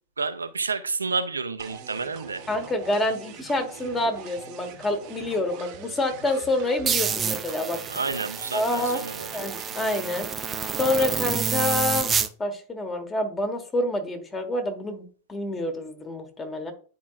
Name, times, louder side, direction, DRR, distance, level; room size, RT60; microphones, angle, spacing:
voice 1, 0.2-2.4 7.9-9.3, right 4 dB, 75° right, 11 dB, 0.5 m, -30 dB
sound 1, 1.6-12.3, right 8 dB, 40° right, 0.9 m, -43 dB
voice 2, 2.5-7.8 8.5-9.0 9.3-10.3 10.8-12.1 12.4-16.7, left 2 dB, 15° left, 7 dB, 1.3 m, -27 dB
sound 2, 6.9-12.3, right 6 dB, 20° right, 0.5 m, -28 dB
10.0 x 4.6 x 2.4 m, 0.40 s
figure-of-eight pair, 90°, 0 cm